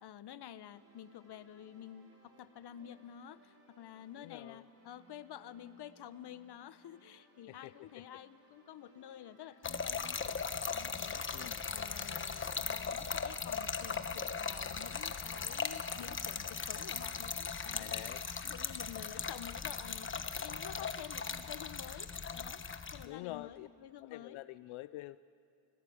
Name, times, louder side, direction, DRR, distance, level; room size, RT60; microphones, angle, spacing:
voice 1, 0.0-10.4 10.7-17.9 18.2-22.6 22.9-24.4, left 10 dB, 55° left, 14 dB, 1.1 m, -50 dB
sound 1, 0.7-16.9, right 1 dB, 30° right, 5.3 m, -65 dB
voice 2, 4.2-4.7 7.5-8.2 11.3-11.6 17.7-18.2 23.0-23.7 24.0-25.2, left 17 dB, 85° left, 15 dB, 0.6 m, -47 dB
Trickle dribble / Fill (with liquid), 9.6-23.1, left 5 dB, 25° left, 1.1 m, -38 dB
28.0 x 18.5 x 8.7 m, 2.5 s
cardioid pair, 110°, 48 cm